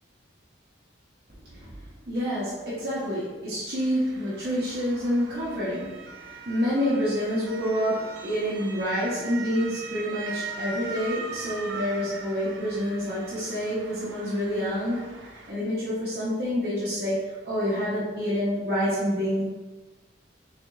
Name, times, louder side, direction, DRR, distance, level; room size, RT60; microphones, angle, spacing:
voice 1, 2.1-19.4, equal, 55° right, -10 dB, 1.0 m, -28 dB
Motor vehicle (road) / Siren, 3.7-15.5, right 4 dB, 85° right, 0.5 m, -41 dB
3.7 x 3.3 x 3.1 m, 1.3 s
head